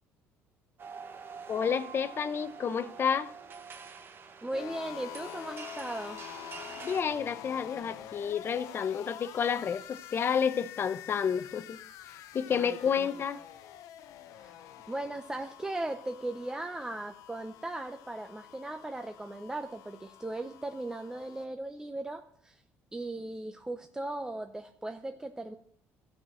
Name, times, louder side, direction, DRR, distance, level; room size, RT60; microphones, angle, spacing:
sound 1, 0.8-7.0, right 6 dB, 40° right, 1.1 m, -46 dB
voice 1, 1.5-3.3 6.8-11.8 12.3-13.4, left 7 dB, 40° left, 0.8 m, -30 dB
voice 2, 4.4-6.2 12.5-13.1 14.3-22.6 22.9-25.6, right 2 dB, 10° right, 0.7 m, -38 dB
sound 2, 4.5-21.5, left 11 dB, 75° left, 0.8 m, -47 dB
14.0 x 6.0 x 7.6 m
cardioid pair, 100°, 6 cm